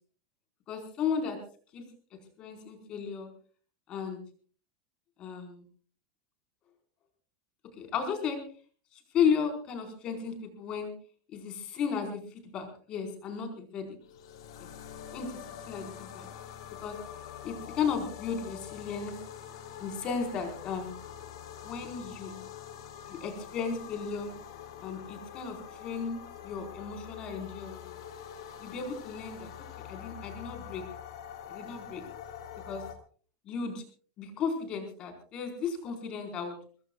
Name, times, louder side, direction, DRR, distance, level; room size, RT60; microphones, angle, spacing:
voice 1, 0.7-1.4 1.7-1.8 2.4-3.3 3.9-4.2 5.2-5.6 7.8-8.4 9.1-10.9 11.3-13.9 14.6-14.7 15.1-15.3 15.7-16.3 16.8-17.0 17.4-19.2 19.8-20.9 21.6-22.5 23.1-24.3 24.8-27.9 28.6-29.5 29.9-30.8 31.5-32.0 32.7-32.8 33.4-33.8 34.2-36.5, left 6 dB, 30° left, 4 dB, 4.6 m, -34 dB
sound 1, 14.0-32.9, left 9 dB, 80° left, 3.0 m, -45 dB
24.0 x 21.0 x 2.4 m, 0.42 s
supercardioid pair, 165°, 3 cm